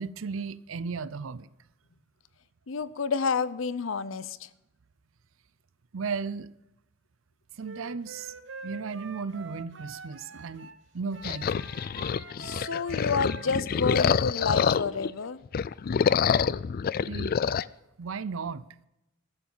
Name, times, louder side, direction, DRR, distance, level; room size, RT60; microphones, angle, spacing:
voice 1, 0.0-1.5 5.9-6.5 7.5-8.3 8.6-11.7 17.0-17.3 18.0-18.6, right 5 dB, 85° right, 0.6 m, -35 dB
voice 2, 2.7-4.5 12.4-15.4, left 5 dB, 80° left, 0.7 m, -30 dB
Wind instrument woodwind instrument, 7.6-10.8 11.1-14.5, right 4 dB, 65° right, 1.2 m, -45 dB
sound 1, 11.2-15.1 15.5-17.7, left 7 dB, 45° left, 0.3 m, -26 dB
13.0 x 7.1 x 7.2 m
head